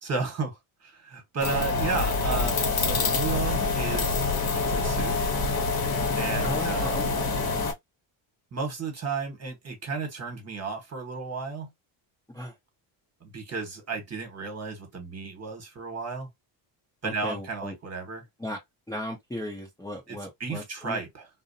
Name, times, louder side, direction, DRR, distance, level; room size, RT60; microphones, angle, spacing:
voice 1, 0.0-5.1 6.1-7.1 8.5-11.7 13.2-16.3 17.0-18.2 20.1-21.3, right 4 dB, 30° right, 1.2 m, -33 dB
sound 1, 1.4-7.7, left 3 dB, 45° left, 0.9 m, -26 dB
voice 2, 6.4-7.3 12.3-12.5 17.0-17.8 18.4-18.6 18.9-21.0, left 1 dB, 5° left, 0.6 m, -36 dB
2.5 x 2.0 x 2.6 m
cardioid pair, 120°, 49 cm